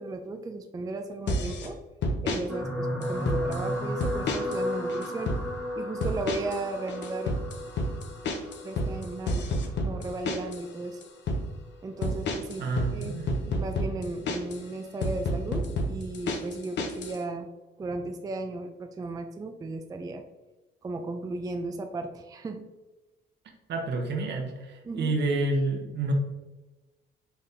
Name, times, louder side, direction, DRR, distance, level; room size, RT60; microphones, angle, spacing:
voice 1, 0.0-1.8 2.2-5.3 5.8-7.3 8.6-9.5 9.8-11.0 11.8-13.2 13.4-17.5 17.8-20.2 20.8-22.7 24.8-25.2, right 2 dB, 20° right, 6 dB, 0.3 m, -35 dB
sound 1, 1.3-1.7 2.0-2.4 3.0-3.6 4.0-4.6 4.9-5.4 6.0-6.6 6.9-10.6 11.0-11.4 12.0-14.6 15.0-17.2, left 1 dB, 65° left, 0.7 m, -29 dB
sound 2, 2.5-10.9 11.7-11.9 12.2-12.3, left 1 dB, 5° left, 0.7 m, -34 dB
voice 2, 12.6-13.4 23.7-26.1, right 2 dB, 60° right, 2 dB, 0.8 m, -29 dB
3.9 x 3.4 x 2.7 m, 1.1 s
cardioid pair, 90°, 20 cm